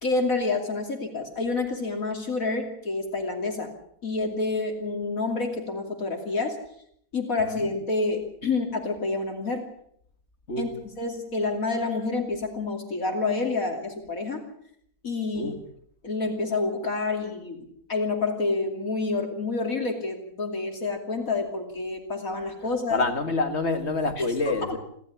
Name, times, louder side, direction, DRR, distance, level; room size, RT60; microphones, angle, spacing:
voice 1, 0.0-3.7 4.0-6.6 7.1-9.7 10.6-10.7 11.0-14.5 15.0-15.6 16.0-23.0 24.2-24.3 24.7-24.8, left 3 dB, 60° left, 3.2 m, -28 dB
voice 2, 22.9-24.8, left 3 dB, 45° left, 2.4 m, -27 dB
28.0 x 12.5 x 8.5 m
omnidirectional pair, 1.6 m